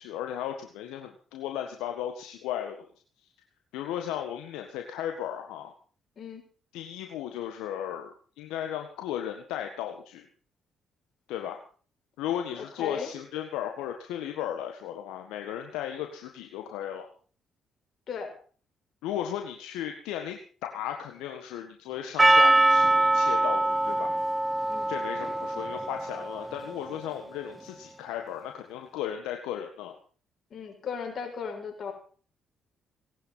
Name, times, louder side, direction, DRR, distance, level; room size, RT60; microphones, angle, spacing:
voice 1, 0.0-2.9 3.7-5.7 6.7-10.3 11.3-11.6 12.2-17.1 19.0-24.1 24.9-29.9, left 10 dB, 85° left, 4 dB, 1.7 m, -35 dB
voice 2, 12.6-13.1 18.1-18.3 24.7-24.9 30.5-31.9, left 6 dB, 55° left, 2 dB, 6.4 m, -36 dB
Percussion, 22.2-26.7, right 2 dB, 20° right, 0.9 m, -23 dB
18.5 x 11.5 x 5.8 m, 0.43 s
supercardioid pair, 55°, 0 cm